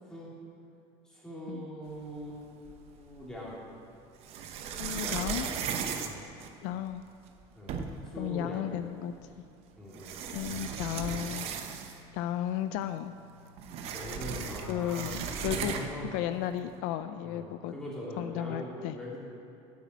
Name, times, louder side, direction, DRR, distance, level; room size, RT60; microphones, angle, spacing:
voice 1, 1.0-3.6 4.9-5.2 6.0-6.2 7.5-7.8 8.0-8.7 9.8-10.2 13.9-15.1 15.4-16.1 17.2-19.2, equal, 5° left, -6 dB, 2.8 m, -42 dB
sound 1, 2.6-3.4 4.2-7.0 7.4-7.5 7.7-8.2 9.2-9.3 9.9-12.1 12.5-12.6 12.8-16.1, right 7 dB, 50° right, 0.9 m, -36 dB
voice 2, 4.8-5.5 6.6-7.0 8.2-9.1 10.3-11.5 12.1-13.1 14.7-15.8 16.1-17.7 18.2-19.0, left 11 dB, 65° left, 11 dB, 0.4 m, -34 dB
9.2 x 8.5 x 8.2 m, 2.5 s
cardioid pair, 165°, 13 cm